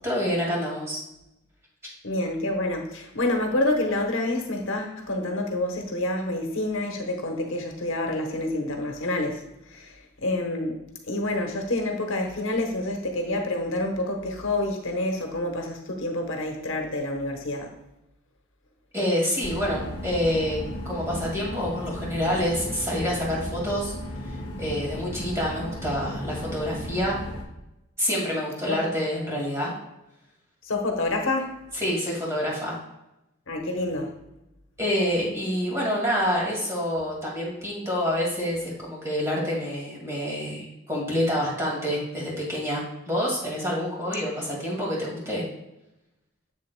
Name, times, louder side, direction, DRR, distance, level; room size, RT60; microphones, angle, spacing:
voice 1, 0.0-1.0 18.9-23.9 24.2-27.2 28.0-29.8 31.7-32.8 34.8-45.4, equal, 15° right, -4 dB, 2.0 m, -27 dB
voice 2, 2.0-9.4 9.7-9.9 10.2-17.7 28.7-28.8 30.6-31.5 33.5-34.1, left 2 dB, 70° left, 3 dB, 1.0 m, -28 dB
sound 1, 19.4-27.4, left 1 dB, 25° left, 1.1 m, -35 dB
7.5 x 7.3 x 2.2 m, 0.91 s
head